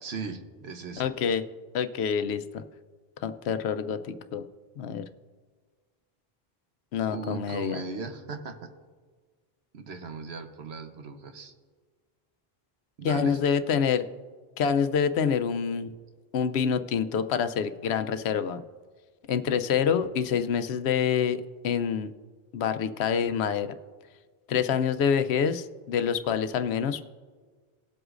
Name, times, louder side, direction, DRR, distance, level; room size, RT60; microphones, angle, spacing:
voice 1, 0.0-1.1 7.1-8.6 9.7-11.5 13.0-13.4, right 4 dB, 85° right, 7 dB, 1.2 m, -38 dB
voice 2, 1.0-1.4 1.7-2.6 3.2-4.4 4.8-5.0 6.9-7.8 13.0-14.1 14.6-15.9 16.3-18.6 19.3-22.1 22.5-23.7 24.5-27.0, left 7 dB, 85° left, 10 dB, 0.9 m, -26 dB
19.5 x 7.9 x 2.5 m, 1.5 s
omnidirectional pair, 1.1 m